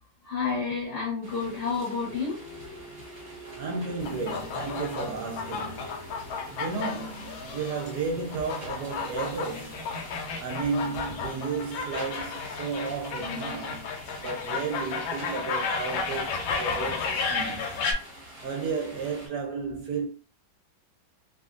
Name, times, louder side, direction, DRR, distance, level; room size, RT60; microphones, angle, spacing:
voice 1, 0.2-6.7, left 4 dB, 50° left, 0.9 m, -34 dB
sound 1, 1.2-19.3, equal, 30° right, 1.0 m, -47 dB
voice 2, 3.6-5.9 6.5-9.8 10.4-13.9 14.2-17.8 18.4-20.1, right 4 dB, 70° right, 1.1 m, -33 dB
sound 2, 4.0-17.9, left 4 dB, 85° left, 1.4 m, -33 dB
3.4 x 2.3 x 2.5 m
omnidirectional pair, 2.1 m